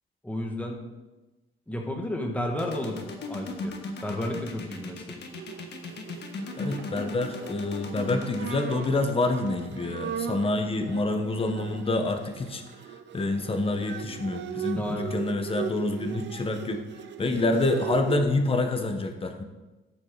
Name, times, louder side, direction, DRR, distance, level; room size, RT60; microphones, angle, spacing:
voice 1, 0.2-0.8 1.7-3.7 4.0-5.0 14.7-15.1, left 1 dB, 5° left, 1 dB, 2.1 m, -32 dB
sound 1, 2.6-10.4, left 3 dB, 60° left, 1.5 m, -37 dB
Bowed string instrument, 5.3-18.2, right 9 dB, 65° right, 0.8 m, -38 dB
voice 2, 6.6-12.6 13.1-16.8 17.2-19.4, left 2 dB, 30° left, 6 dB, 1.2 m, -27 dB
14.0 x 6.8 x 4.0 m, 1.1 s
cardioid pair, 90°, 20 cm